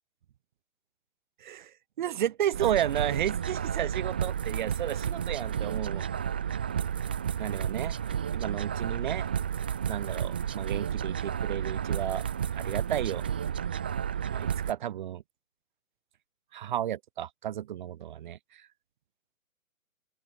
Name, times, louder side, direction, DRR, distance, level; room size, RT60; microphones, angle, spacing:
voice 1, 1.4-1.7 2.0-6.1 7.4-7.9 8.3-9.3 9.9-12.2 12.5-13.3 14.3-15.2 16.5-18.6, right 11 dB, 35° right, 3.5 m, -32 dB
sound 1, 2.5-14.7, right 8 dB, 5° right, 0.7 m, -32 dB
open air
hypercardioid pair, 165°, 42 cm